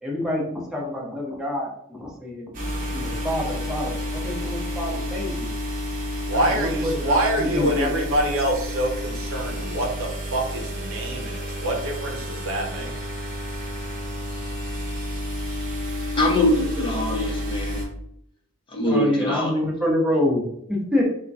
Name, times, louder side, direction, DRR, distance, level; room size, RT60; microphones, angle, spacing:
voice 1, 0.0-2.5 2.9-5.6 6.3-8.0 18.9-21.0, left 1 dB, 5° right, -3 dB, 0.9 m, -27 dB
sound 1, 2.5-17.9, left 1 dB, 40° right, 1.0 m, -30 dB
voice 2, 6.3-12.9, right 1 dB, 65° right, 1 dB, 0.8 m, -26 dB
voice 3, 16.2-17.8 18.7-19.5, left 1 dB, 25° left, -2 dB, 0.9 m, -23 dB
3.7 x 2.3 x 4.0 m, 0.74 s
head